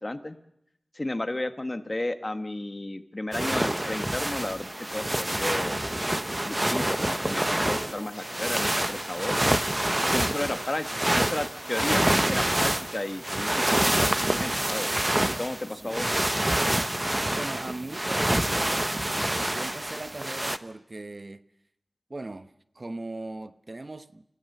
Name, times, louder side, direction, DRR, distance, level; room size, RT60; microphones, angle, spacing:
voice 1, 0.0-0.4 0.9-5.8 6.5-9.4 10.0-10.9 11.1-14.9 15.4-16.2, left 1 dB, 35° left, 1.5 m, -33 dB
sound 1, 3.3-20.6, right 1 dB, 20° right, 1.0 m, -27 dB
voice 2, 15.7-16.0 17.3-18.8 19.5-21.4 22.1-24.2, right 2 dB, 50° right, 1.0 m, -39 dB
27.5 x 16.0 x 6.7 m
wide cardioid pair, 50°, 0 cm